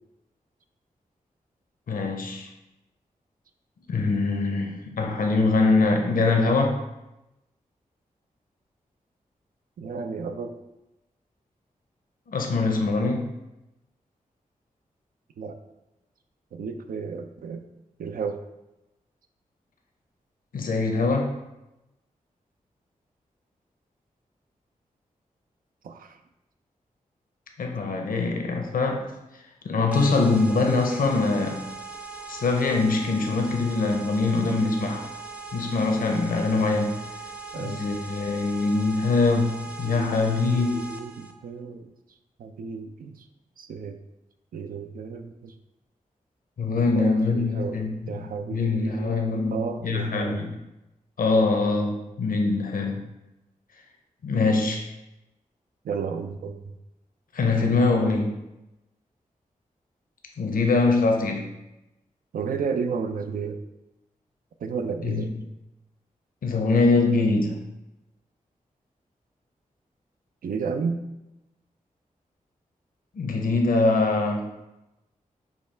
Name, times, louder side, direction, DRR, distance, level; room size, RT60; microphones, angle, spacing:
voice 1, 1.9-2.5 3.9-6.8 12.3-13.3 20.5-21.3 27.6-29.1 29.6-31.6 32.3-35.1 35.5-37.0 37.6-40.8 46.6-50.5 51.2-53.1 54.2-54.9 57.3-58.3 60.4-61.5 65.0-65.3 66.4-67.6 73.1-74.5, left 3 dB, 75° left, 3 dB, 0.7 m, -23 dB
voice 2, 9.8-10.6 15.4-15.6 16.5-17.6 18.0-18.4 25.8-26.2 37.5-37.8 39.8-41.9 42.4-43.3 43.6-44.0 44.5-45.5 46.8-49.2 49.5-50.4 55.8-56.6 62.3-63.6 64.6-65.3 70.4-71.0, right 5 dB, 80° right, 7 dB, 0.4 m, -32 dB
sound 1, 29.9-41.3, right 4 dB, 10° right, 0.5 m, -39 dB
5.2 x 2.3 x 4.3 m, 0.95 s
cardioid pair, 45°, 15 cm